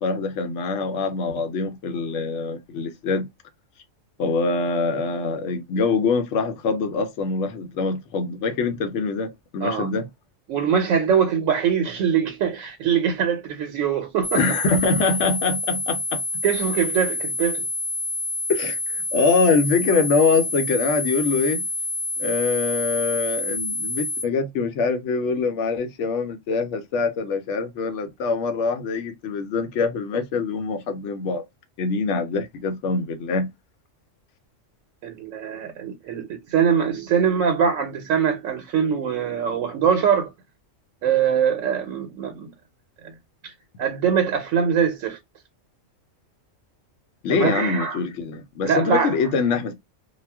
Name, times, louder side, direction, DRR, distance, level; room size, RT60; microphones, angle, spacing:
voice 1, 0.0-3.3 4.2-10.1 14.3-16.2 18.5-21.7 22.2-31.4 31.8-33.5 47.2-49.7, left 4 dB, 70° left, 0.8 m, -24 dB
voice 2, 10.5-14.4 16.4-17.7 35.0-40.3 41.0-42.5 43.0-43.1 43.4-43.5 43.8-45.2 47.3-48.0 48.6-49.1, right 7 dB, 85° right, 1.0 m, -22 dB
sound 1, 14.2-24.2, left 2 dB, 20° left, 0.4 m, -28 dB
2.3 x 2.1 x 3.3 m
omnidirectional pair, 1.3 m